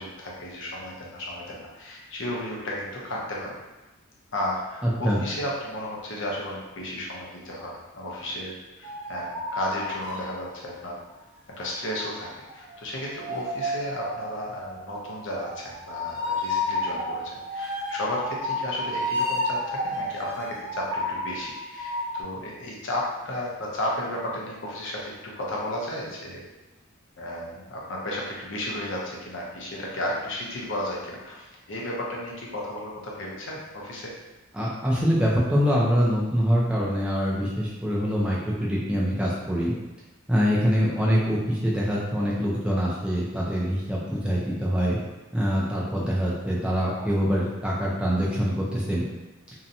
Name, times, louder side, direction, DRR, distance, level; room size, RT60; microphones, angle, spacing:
voice 1, 0.0-3.6 4.3-10.9 11.6-26.4 27.2-34.1 41.0-41.1, left 1 dB, 60° left, -3 dB, 0.6 m, -33 dB
voice 2, 4.8-5.2 34.5-39.7 40.3-45.0 45.3-49.0, equal, 5° right, -5 dB, 0.4 m, -24 dB
sound 1, 8.8-10.6 11.7-22.2, left 1 dB, 75° right, 0.8 m, -31 dB
2.7 x 2.1 x 2.5 m, 1.1 s
head